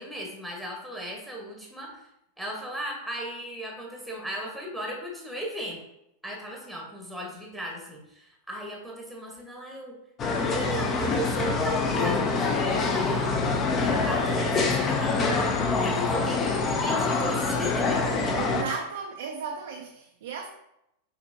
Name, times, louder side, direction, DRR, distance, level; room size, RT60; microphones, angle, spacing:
voice 1, 0.0-2.1 2.4-5.8 6.2-9.9 10.4-13.3 13.7-15.5 15.8-18.1, equal, ahead, -1 dB, 1.0 m, -36 dB
sound 1, 10.2-18.6, left 4 dB, 30° left, 0.5 m, -25 dB
voice 2, 18.3-20.5, right 5 dB, 55° right, 2 dB, 0.4 m, -35 dB
5.9 x 2.8 x 2.7 m, 0.82 s
figure-of-eight pair, 90°, 0 cm